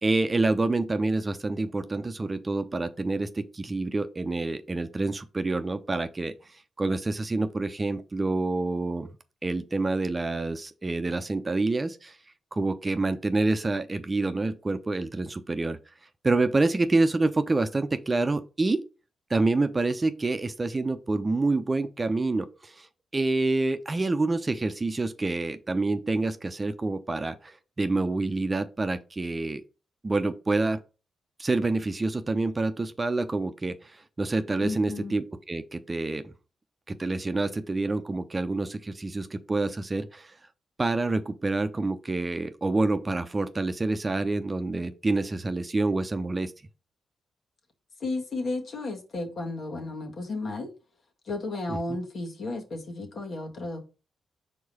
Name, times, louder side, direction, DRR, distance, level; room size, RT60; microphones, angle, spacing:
voice 1, 0.0-6.3 6.8-9.1 9.4-12.2 12.5-15.8 16.2-18.8 19.3-22.9 23.1-29.6 30.0-30.8 31.4-36.3 36.9-40.3 40.8-46.5 51.7-51.8, right 2 dB, 30° right, 0.7 m, -27 dB
voice 2, 34.6-35.2 48.0-50.7 51.3-53.8, left 2 dB, 60° left, 1.8 m, -33 dB
4.7 x 3.8 x 5.4 m
hypercardioid pair, 45°, 0 cm